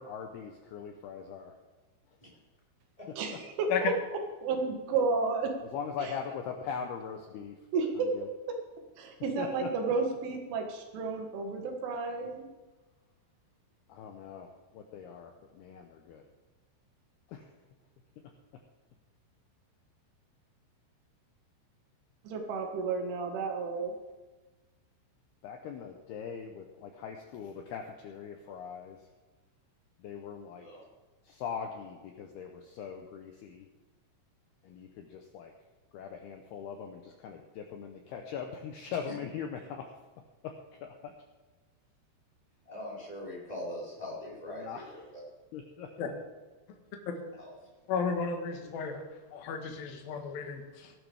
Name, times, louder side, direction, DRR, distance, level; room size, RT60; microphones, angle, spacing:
voice 1, 0.0-1.6 3.3-3.4 5.7-7.6 8.1-8.3 9.4-9.9 13.9-16.2 17.3-17.5 25.4-29.1 30.0-30.7 31.2-33.7 34.6-35.5 35.9-39.9 40.4-40.5 40.8-41.1 44.0-45.0 45.5-45.9, left 7 dB, 80° left, 4 dB, 2.3 m, -41 dB
voice 2, 3.2-3.9 4.4-5.5 6.0-6.1 7.7-8.1 9.0-12.4 22.2-23.9, right 4 dB, 80° right, 2 dB, 4.1 m, -32 dB
voice 3, 42.6-45.2 47.4-47.5, equal, 10° left, -6 dB, 4.4 m, -42 dB
voice 4, 47.9-49.0 49.3-50.9, left 6 dB, 65° left, 3 dB, 2.7 m, -33 dB
17.5 x 12.5 x 3.5 m, 1.2 s
omnidirectional pair, 5.6 m